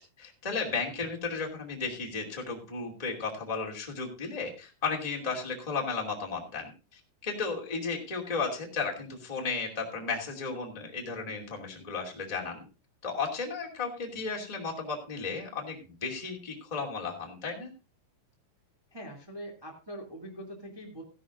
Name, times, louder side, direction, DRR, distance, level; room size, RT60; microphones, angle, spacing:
voice 1, 0.2-12.6 13.0-17.7, left 4 dB, 10° left, 0 dB, 1.9 m, -34 dB
voice 2, 18.9-21.0, equal, 10° right, 0 dB, 1.4 m, -43 dB
16.0 x 11.0 x 2.6 m, 0.33 s
omnidirectional pair, 4.6 m